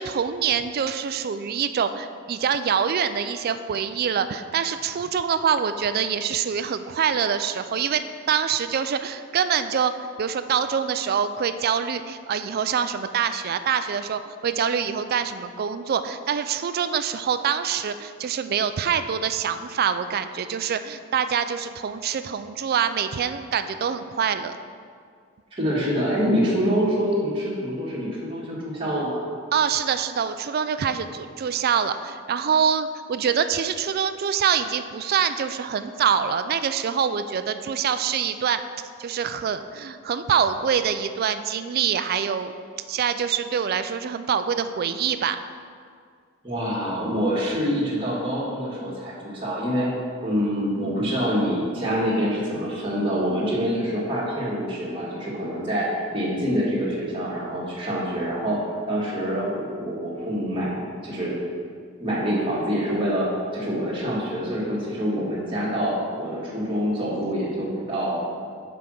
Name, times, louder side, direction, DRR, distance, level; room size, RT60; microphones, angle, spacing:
voice 1, 0.0-8.0 8.3-9.9 10.2-24.5 29.5-38.6 39.0-42.5 42.9-45.4, right 7 dB, 50° right, 11 dB, 0.3 m, -25 dB
voice 2, 25.5-29.3 46.4-49.9 50.2-61.3 62.0-68.2, equal, 25° right, -7 dB, 1.8 m, -26 dB
5.7 x 5.1 x 6.3 m, 2.1 s
head